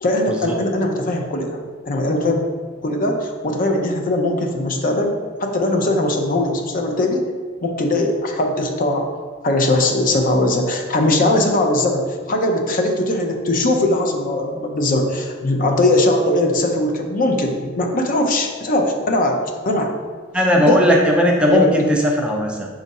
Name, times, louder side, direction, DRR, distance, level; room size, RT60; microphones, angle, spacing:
voice 1, 0.0-1.6 1.9-2.4 2.8-7.2 7.6-9.1 9.4-19.4 19.6-19.9 20.6-20.8 21.5-21.8, left 1 dB, 45° left, 3 dB, 0.5 m, -20 dB
voice 2, 20.3-22.7, equal, 5° right, 0 dB, 0.4 m, -16 dB
5.3 x 2.5 x 4.0 m, 1.5 s
head